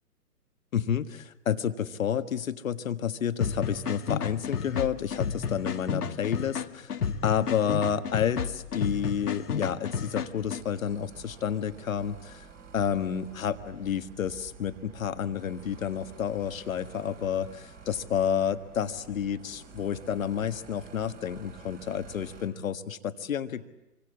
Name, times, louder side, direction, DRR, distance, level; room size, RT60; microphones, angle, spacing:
voice 1, 0.7-6.9 7.2-12.4 12.7-23.6, left 8 dB, 60° left, 10 dB, 1.6 m, -30 dB
sound 1, 3.4-10.6, left 6 dB, 75° left, 1.4 m, -32 dB
sound 2, 8.8-22.5, right 5 dB, 20° right, 3.5 m, -50 dB
26.5 x 24.0 x 8.5 m, 0.93 s
figure-of-eight pair, 130°, 47 cm